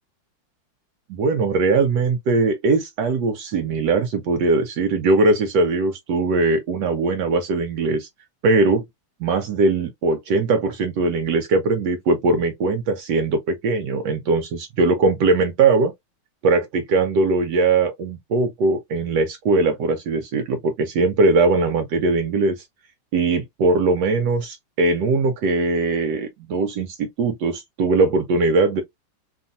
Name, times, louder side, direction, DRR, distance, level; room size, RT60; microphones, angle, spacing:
voice 1, 1.1-8.1 8.4-8.8 9.2-15.9 16.4-22.6 23.1-28.8, right 3 dB, 75° right, 1.1 m, -20 dB
2.9 x 2.6 x 2.5 m
omnidirectional pair, 2.0 m